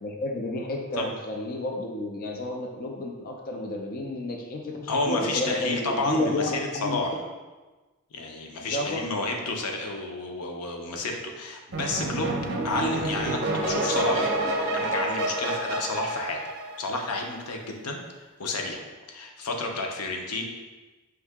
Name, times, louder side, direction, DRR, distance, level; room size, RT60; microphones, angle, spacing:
voice 1, 0.0-6.5 6.7-7.0 8.7-9.0, left 1 dB, 40° left, 1 dB, 0.4 m, -31 dB
voice 2, 4.9-7.2 8.1-12.4 12.6-14.4 14.7-16.4 16.8-18.0 18.4-20.4, left 2 dB, 90° left, 2 dB, 0.6 m, -30 dB
sound 1, 11.7-17.2, right 2 dB, 50° right, 0.6 m, -28 dB
4.7 x 2.7 x 3.4 m, 1.2 s
head